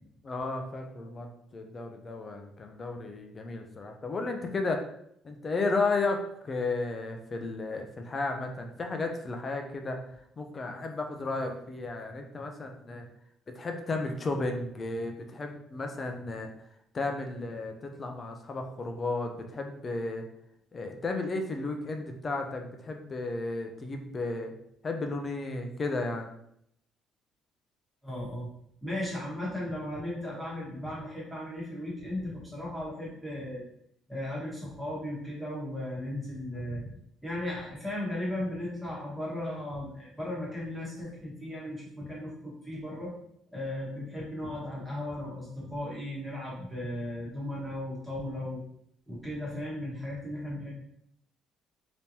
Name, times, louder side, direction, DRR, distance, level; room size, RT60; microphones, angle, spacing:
voice 1, 0.2-4.8 5.2-6.2 6.4-10.0 10.4-13.1 13.5-16.5 16.9-20.2 20.7-24.5 24.8-26.3, left 3 dB, 25° left, 4 dB, 0.5 m, -33 dB
voice 2, 28.0-28.5 28.8-33.6 34.1-36.9 37.2-43.1 43.5-48.6 49.1-50.7, left 1 dB, ahead, -6 dB, 1.3 m, -36 dB
3.5 x 2.9 x 2.8 m, 0.72 s
cardioid pair, 145°, 0 cm